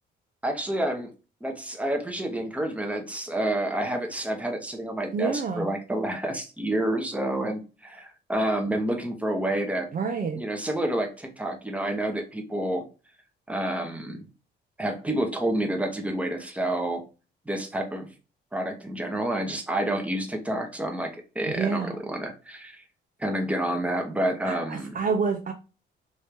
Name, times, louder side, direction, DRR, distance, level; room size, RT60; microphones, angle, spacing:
voice 1, 0.4-1.1 1.4-9.9 10.4-12.9 13.5-14.3 14.8-17.0 17.5-18.1 18.5-22.8 23.2-25.0, right 1 dB, 5° right, 4 dB, 0.9 m, -29 dB
voice 2, 5.1-5.7 9.9-10.4 21.5-22.0 24.5-25.5, right 5 dB, 45° right, 4 dB, 0.5 m, -28 dB
3.2 x 2.7 x 3.2 m, 0.32 s
cardioid pair, 90°, 20 cm